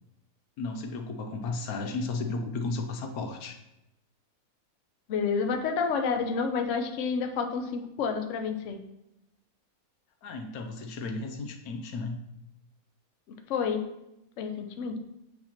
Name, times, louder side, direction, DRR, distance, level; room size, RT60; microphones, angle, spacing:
voice 1, 0.6-3.6 10.2-12.2, left 3 dB, 90° left, 5 dB, 1.1 m, -34 dB
voice 2, 5.1-8.8 13.5-13.8 14.4-15.0, left 5 dB, 65° left, 5 dB, 0.9 m, -29 dB
8.6 x 2.9 x 4.2 m, 0.88 s
omnidirectional pair, 1.5 m